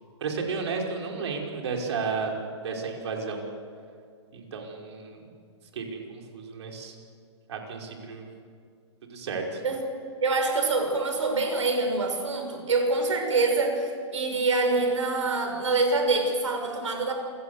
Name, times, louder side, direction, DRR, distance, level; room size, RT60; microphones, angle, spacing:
voice 1, 0.2-2.3 2.6-3.5 4.3-5.2 5.7-6.9 7.5-8.3 9.1-9.6, right 4 dB, 65° right, 1 dB, 5.4 m, -33 dB
voice 2, 10.2-17.1, right 3 dB, 85° right, 4 dB, 6.4 m, -25 dB
28.0 x 17.5 x 8.3 m, 2.1 s
hypercardioid pair, 140°, 15 cm